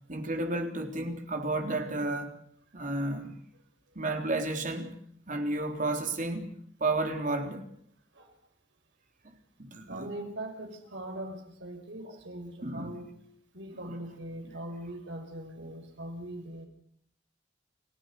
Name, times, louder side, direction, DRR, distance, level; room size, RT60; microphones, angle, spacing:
voice 1, 0.1-2.4 2.7-3.3 4.0-5.0 5.3-6.5 6.8-7.6 9.2-9.3 9.6-10.1 12.6-13.0 13.8-13.9 14.4-14.6, right 2 dB, 45° right, 3.7 m, -32 dB
voice 2, 9.9-13.1 13.5-16.7, right 1 dB, 70° right, 6.0 m, -41 dB
29.5 x 16.0 x 6.8 m
head